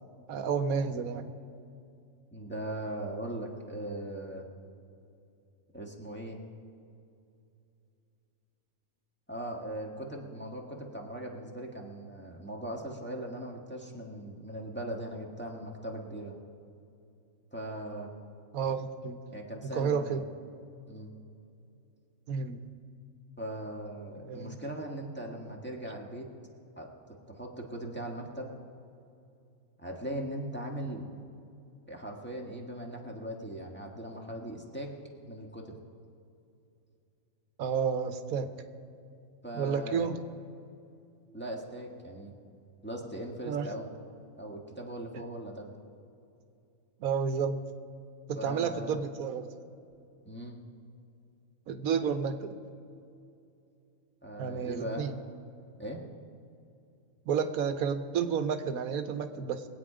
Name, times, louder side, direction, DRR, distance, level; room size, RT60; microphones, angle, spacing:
voice 1, 0.3-1.3 18.5-19.2 19.6-20.2 22.3-22.7 24.2-24.6 37.6-38.5 39.5-40.2 43.5-43.7 47.0-47.6 48.3-49.5 51.7-52.5 54.4-55.1 57.3-59.7, right 6 dB, 90° right, 9 dB, 1.2 m, -31 dB
voice 2, 2.3-4.5 5.7-6.4 9.3-16.4 17.5-18.1 19.3-20.2 20.9-21.1 23.4-26.3 26.8-28.5 29.8-31.1 31.9-34.9 35.3-35.7 39.4-40.1 41.3-42.3 42.8-43.9 44.4-45.7 48.4-49.0 50.2-50.6 54.2-55.0 55.8-56.0, right 1 dB, 10° left, -1 dB, 1.4 m, -39 dB
22.5 x 8.6 x 5.0 m, 2.6 s
omnidirectional pair, 1.5 m